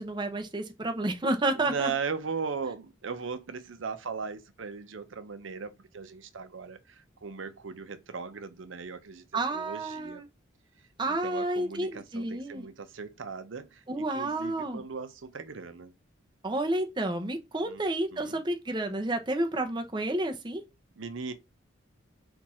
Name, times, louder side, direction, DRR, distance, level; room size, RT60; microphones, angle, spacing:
voice 1, 0.0-1.9 9.3-10.2 11.0-12.6 13.9-14.8 16.4-20.6, right 2 dB, 25° right, 0.6 m, -30 dB
voice 2, 1.5-9.3 9.5-10.2 11.1-15.9 17.6-17.8 18.1-18.4 21.0-21.3, right 5 dB, 85° right, 0.6 m, -38 dB
4.5 x 2.5 x 4.2 m
head